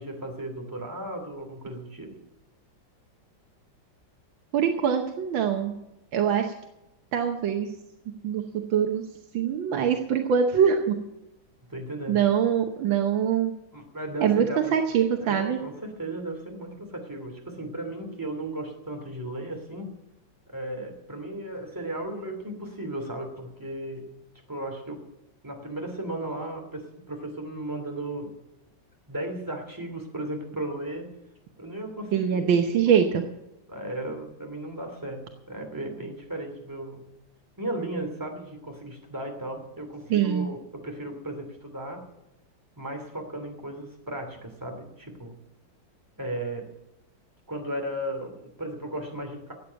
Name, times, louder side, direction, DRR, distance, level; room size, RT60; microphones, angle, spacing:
voice 1, 0.0-2.2 11.7-12.3 13.7-14.8 15.2-19.9 20.5-24.1 24.5-25.1 25.4-28.3 29.1-31.1 31.6-33.0 33.7-37.1 37.6-42.1 42.8-45.4 46.2-46.7 47.5-49.5, right 1 dB, 10° right, 3 dB, 2.6 m, -35 dB
voice 2, 4.5-5.8 6.1-6.5 7.1-7.8 8.1-9.1 9.3-11.0 12.1-13.6 14.2-15.6 32.1-33.2 40.1-40.5, right 8 dB, 85° right, 4 dB, 1.8 m, -23 dB
14.0 x 8.6 x 7.5 m, 0.90 s
omnidirectional pair, 2.1 m